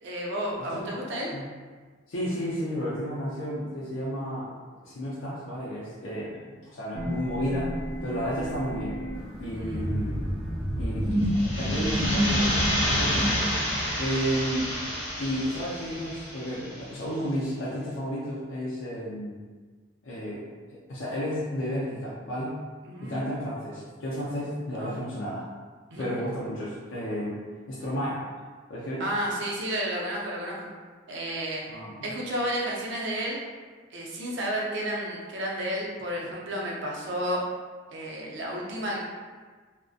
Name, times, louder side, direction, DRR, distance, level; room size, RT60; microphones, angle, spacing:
voice 1, 0.0-1.3 9.5-9.9 22.8-23.2 24.8-24.9 25.9-26.1 29.0-30.7 31.1-31.6 32.0-33.4 33.9-37.4 37.9-39.0, equal, 65° right, -3 dB, 0.5 m, -31 dB
voice 2, 2.1-4.5 4.8-9.0 9.4-10.3 10.8-13.5 14.0-14.7 15.1-19.4 20.0-22.7 23.0-25.5 26.0-27.4 27.7-28.2 28.7-29.0 31.7-32.1, equal, 80° left, -8 dB, 0.5 m, -32 dB
sound 1, 6.9-13.4, equal, 5° right, 0.3 m, -29 dB
sound 2, 11.2-16.9, equal, 35° left, 0.9 m, -29 dB
2.5 x 2.1 x 2.4 m, 1.5 s
head